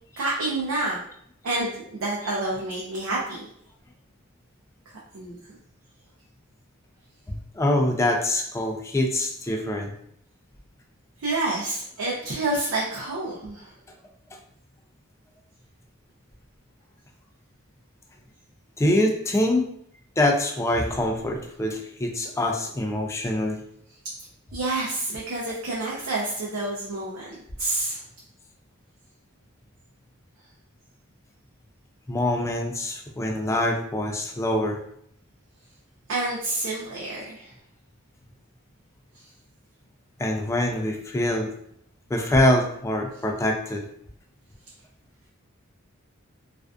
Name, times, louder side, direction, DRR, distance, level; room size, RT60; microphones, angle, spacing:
voice 1, 0.2-1.0 1.4-3.5 5.1-5.3 11.2-13.7 24.5-28.0 36.1-37.5, right 2 dB, 85° right, -4 dB, 0.5 m, -28 dB
voice 2, 7.3-9.9 18.8-19.7 20.2-23.6 32.1-34.8 40.2-41.5 42.1-43.8, left 1 dB, 15° left, 2 dB, 0.3 m, -24 dB
2.5 x 2.3 x 2.3 m, 0.69 s
head